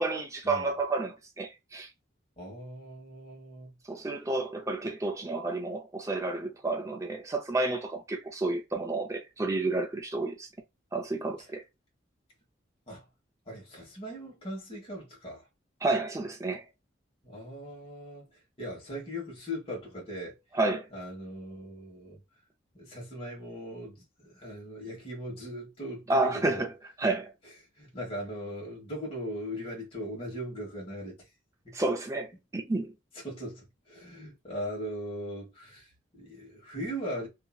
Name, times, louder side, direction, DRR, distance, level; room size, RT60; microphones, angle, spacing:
voice 1, 0.0-1.9 3.9-10.5 10.9-11.6 15.8-16.6 20.5-20.9 26.1-26.7 27.0-27.3 31.7-32.9, right 2 dB, 15° right, 0.4 m, -30 dB
voice 2, 2.4-3.7 12.9-13.0 13.5-15.5 17.2-20.4 20.9-22.2 22.7-26.7 27.8-31.2 31.6-31.8 33.2-37.3, equal, 30° left, 1.3 m, -39 dB
2.8 x 2.6 x 2.3 m
head